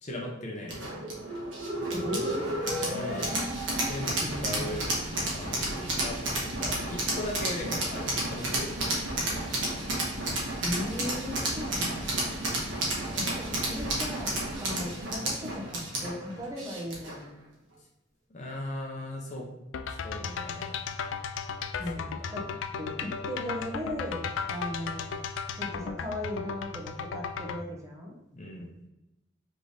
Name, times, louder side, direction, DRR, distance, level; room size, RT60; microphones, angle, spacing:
voice 1, 0.0-1.0 2.9-3.4 3.8-4.9 5.3-9.3 13.1-13.5 18.3-19.4 19.9-20.8 22.0-22.4 28.3-28.7, left 1 dB, 40° left, -1 dB, 0.8 m, -38 dB
sound 1, 0.7-17.2, right 1 dB, 80° right, 1.4 m, -31 dB
voice 2, 1.9-2.5 4.2-5.1 10.6-12.1 13.1-17.4 21.8-22.5 22.8-25.1 25.5-28.1, left 1 dB, 15° right, -2 dB, 0.9 m, -37 dB
sound 2, 19.7-27.6, left 6 dB, 90° left, 0.3 m, -35 dB
3.6 x 3.3 x 4.0 m, 0.89 s
head